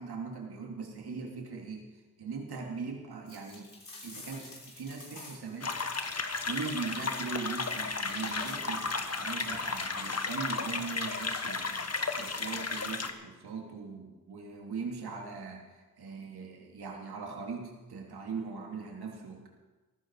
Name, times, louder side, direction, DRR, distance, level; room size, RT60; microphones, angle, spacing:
voice 1, 0.0-1.9 2.2-3.7 4.0-5.7 6.5-11.8 12.2-19.5, right 5 dB, 85° right, 1 dB, 3.1 m, -40 dB
sound 1, 3.3-5.6 6.3-8.9 9.8-12.8, left 2 dB, 60° left, 6.1 m, -51 dB
sound 2, 5.6-13.1, left 4 dB, 40° left, 1.5 m, -34 dB
18.0 x 15.0 x 4.9 m, 1.2 s
cardioid pair, 55°, 38 cm